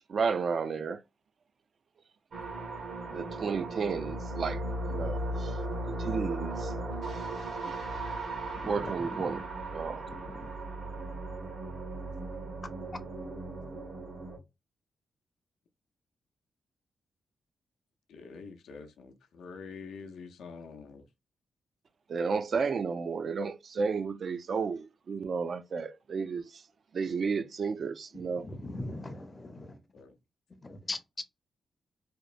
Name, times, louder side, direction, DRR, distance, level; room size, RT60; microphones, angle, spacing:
voice 1, 0.1-1.0 3.1-4.6 4.9-5.6 5.9-6.7 8.6-9.5 9.7-10.0 22.1-26.5 26.9-28.5, right 5 dB, 55° right, 0.3 m, -32 dB
sound 1, 2.3-14.4, right 2 dB, 70° right, 1.1 m, -37 dB
voice 2, 18.1-21.0 29.9-30.1, left 5 dB, 90° left, 0.5 m, -46 dB
voice 3, 28.4-29.7 30.6-31.2, left 2 dB, 25° left, 0.5 m, -39 dB
2.9 x 2.1 x 2.4 m
cardioid pair, 90°, 0 cm